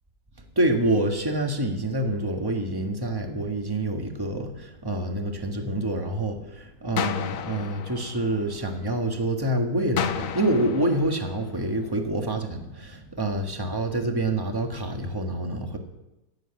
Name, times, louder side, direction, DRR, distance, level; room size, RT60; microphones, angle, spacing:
voice 1, 0.5-15.8, right 1 dB, 15° right, 3 dB, 1.6 m, -27 dB
sound 1, 7.0-9.0 10.0-12.0, left 8 dB, 65° left, 1.1 m, -33 dB
15.5 x 7.8 x 9.0 m, 0.96 s
omnidirectional pair, 1.6 m